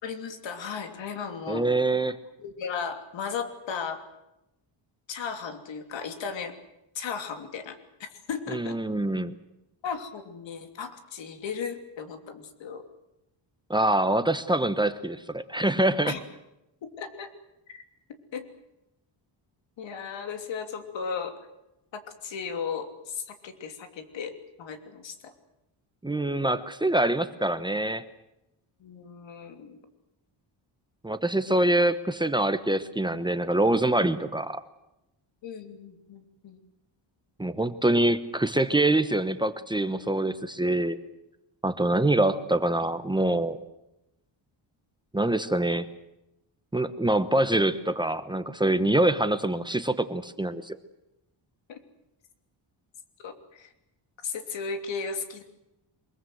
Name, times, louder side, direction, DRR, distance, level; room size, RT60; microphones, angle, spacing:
voice 1, 0.0-1.7 2.4-4.0 5.1-6.5 6.9-8.8 9.8-12.8 16.1-16.2 16.8-17.3 17.7-17.8 18.3-18.5 19.8-21.4 21.9-25.3 28.8-29.8 35.4-36.6 51.7-51.8 53.2-53.7 54.2-55.4, left 6 dB, 75° left, 7 dB, 3.1 m, -36 dB
voice 2, 1.5-2.2 8.5-9.3 13.7-16.1 26.0-28.0 31.0-34.6 37.4-41.0 41.6-43.6 45.1-45.9 46.7-50.8, right 1 dB, 10° right, 10 dB, 1.0 m, -25 dB
24.0 x 22.0 x 8.0 m, 0.90 s
cardioid pair, 135°, 45 cm